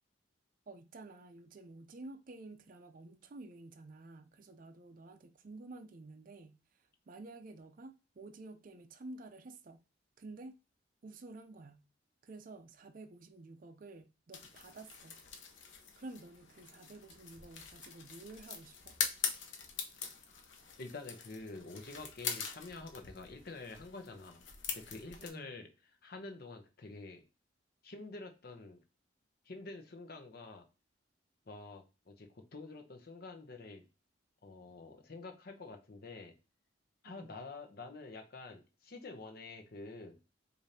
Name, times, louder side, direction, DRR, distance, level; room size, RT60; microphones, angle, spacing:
voice 1, 0.7-6.6 7.1-9.8 10.2-10.5 11.0-11.8 12.2-15.2 16.0-19.0 25.2-25.5 37.0-37.4, right 2 dB, 45° right, 0.4 m, -51 dB
sound 1, 14.3-25.3, left 6 dB, 85° left, 0.7 m, -43 dB
voice 2, 20.8-27.2 27.8-28.8 29.5-30.7 31.5-33.8 34.4-36.4 37.0-40.2, left 3 dB, 55° left, 0.8 m, -48 dB
4.9 x 2.6 x 2.7 m
head